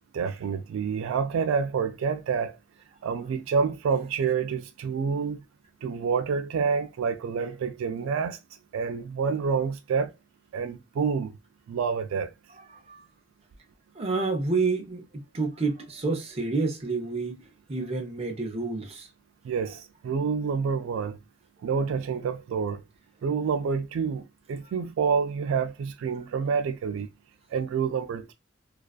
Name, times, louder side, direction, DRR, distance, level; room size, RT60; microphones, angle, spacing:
voice 1, 0.1-2.6 3.0-5.4 5.8-8.4 8.7-10.1 10.5-11.4 11.7-12.3 19.4-21.2 21.6-22.8 23.2-27.1 27.5-28.3, right 6 dB, 80° right, 0.3 m, -28 dB
voice 2, 12.7-13.0 14.0-17.4 17.7-19.1, right 3 dB, 30° right, 0.6 m, -29 dB
2.4 x 2.3 x 2.3 m
head